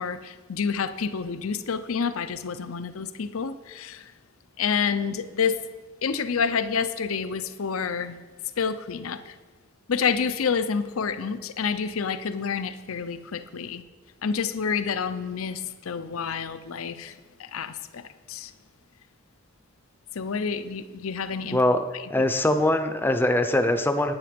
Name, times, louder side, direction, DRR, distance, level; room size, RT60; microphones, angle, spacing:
voice 1, 0.0-4.1 4.6-5.6 6.0-8.2 8.6-9.3 9.9-13.8 14.2-18.5 20.1-21.6 21.9-22.1, left 6 dB, 85° left, 13 dB, 0.6 m, -28 dB
voice 2, 22.1-24.1, left 1 dB, 10° left, 8 dB, 0.5 m, -22 dB
10.5 x 9.5 x 5.1 m, 1.3 s
head